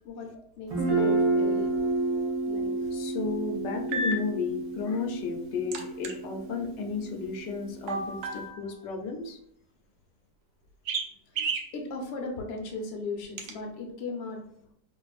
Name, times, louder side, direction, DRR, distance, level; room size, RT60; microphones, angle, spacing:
voice 1, 0.6-1.7 2.5-2.9 8.3-8.7 11.3-14.4, left 3 dB, 55° left, 2 dB, 0.7 m, -37 dB
Guitar, 0.7-8.4, right 3 dB, 55° right, 1.3 m, -30 dB
sound 1, 1.8-1.9 3.9-4.1 5.7-6.1 7.9-8.7 10.9-11.1 11.4-11.7 13.4-13.5, right 3 dB, 75° right, 1.1 m, -31 dB
voice 2, 2.9-9.4 11.4-11.5, left 4 dB, 80° left, 4 dB, 1.2 m, -33 dB
5.0 x 2.5 x 2.4 m, 0.74 s
omnidirectional pair, 1.9 m